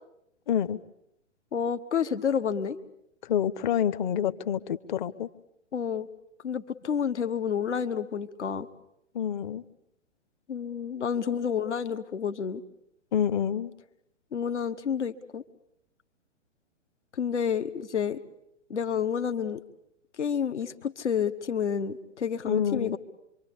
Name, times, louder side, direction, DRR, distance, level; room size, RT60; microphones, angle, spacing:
voice 1, 0.5-0.8 3.2-5.3 9.1-9.6 13.1-13.7 22.5-23.0, left 9 dB, 40° left, 14 dB, 1.2 m, -27 dB
voice 2, 1.5-2.8 5.7-6.1 6.4-8.7 10.5-12.6 14.3-15.4 17.1-18.2 18.7-19.6 20.2-23.0, left 7 dB, 65° left, 10 dB, 1.5 m, -29 dB
26.0 x 24.5 x 8.4 m, 0.79 s
figure-of-eight pair, 115°, 37 cm